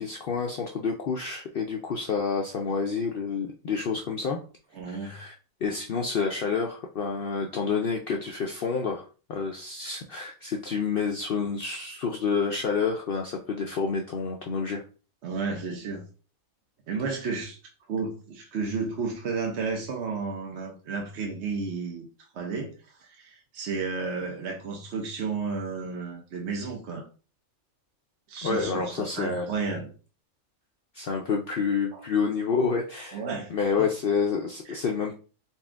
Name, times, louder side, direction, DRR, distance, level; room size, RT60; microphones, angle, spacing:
voice 1, 0.0-4.4 4.9-5.4 5.6-14.8 28.4-29.5 30.9-33.2 33.5-35.1, left 5 dB, 75° left, 1 dB, 0.5 m, -28 dB
voice 2, 4.7-5.2 15.2-16.1 16.9-17.6 17.9-22.1 22.3-27.1 28.3-29.9 31.9-32.0 33.1-33.5 33.8-33.9 34.7-34.8, right 4 dB, 55° right, 1 dB, 0.9 m, -32 dB
4.2 x 2.4 x 3.4 m, 0.36 s
omnidirectional pair, 1.5 m